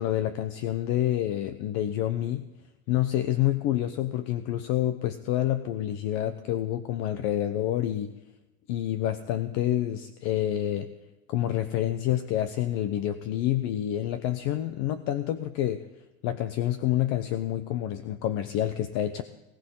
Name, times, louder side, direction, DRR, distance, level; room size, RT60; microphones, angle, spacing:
voice 1, 0.0-2.5 2.9-8.1 8.7-10.9 11.3-15.9 16.2-19.2, left 12 dB, 50° left, 11 dB, 1.0 m, -28 dB
20.0 x 18.0 x 3.9 m, 1.0 s
supercardioid pair, 135°, 35 cm